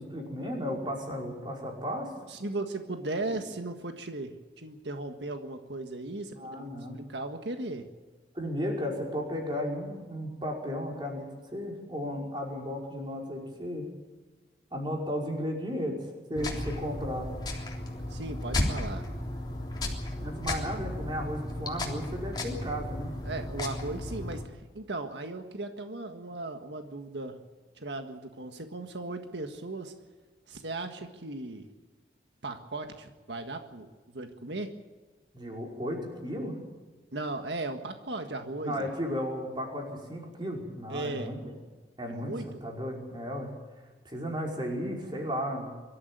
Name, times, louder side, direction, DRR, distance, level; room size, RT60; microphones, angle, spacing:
voice 1, 0.0-2.1 6.3-7.0 8.3-13.9 14.7-16.0 16.3-17.3 20.2-23.1 35.3-36.6 38.6-41.5 42.0-43.5 44.0-45.7, equal, 25° right, -1 dB, 5.4 m, -34 dB
voice 2, 2.3-6.7 6.9-7.9 16.3-16.6 18.1-19.0 23.2-27.4 27.7-29.9 30.5-31.7 32.4-34.7 37.1-38.9 40.9-41.3 42.1-42.5, right 2 dB, 90° right, 6 dB, 1.7 m, -37 dB
sound 1, 16.4-24.4, left 1 dB, 25° left, 3.4 m, -34 dB
24.0 x 13.5 x 9.1 m, 1.3 s
head